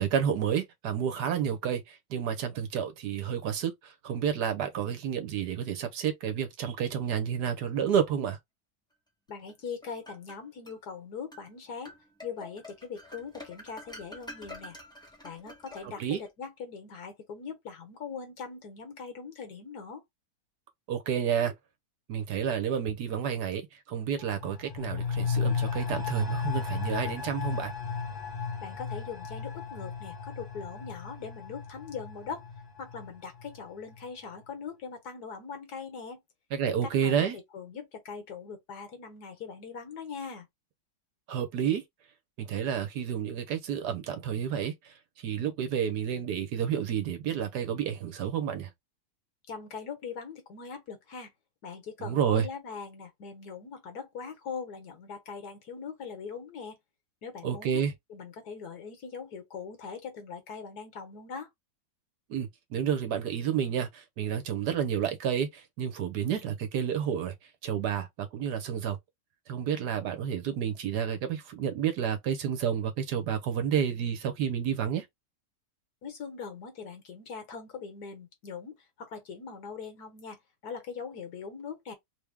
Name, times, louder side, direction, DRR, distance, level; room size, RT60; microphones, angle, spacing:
voice 1, 0.0-8.4 15.8-16.2 20.9-21.5 22.1-27.7 36.5-37.4 41.3-41.8 42.4-44.9 45.2-48.7 52.0-52.5 57.4-57.9 62.3-67.3 67.6-69.0 69.5-75.0, right 8 dB, 75° right, 1.4 m, -30 dB
voice 2, 9.3-11.9 12.2-14.8 15.2-20.0 28.6-32.5 32.8-36.2 36.7-37.3 37.5-40.5 49.5-51.3 51.6-56.8 57.2-57.8 58.1-61.5 76.0-80.4 80.6-81.9, left 5 dB, 65° left, 1.6 m, -41 dB
sound 1, 9.5-10.8 11.3-11.5 11.8-16.3, left 1 dB, 5° left, 0.5 m, -48 dB
sound 2, 24.2-33.6 33.9-34.0, left 6 dB, 35° left, 0.9 m, -34 dB
3.5 x 2.2 x 3.4 m
omnidirectional pair, 1.8 m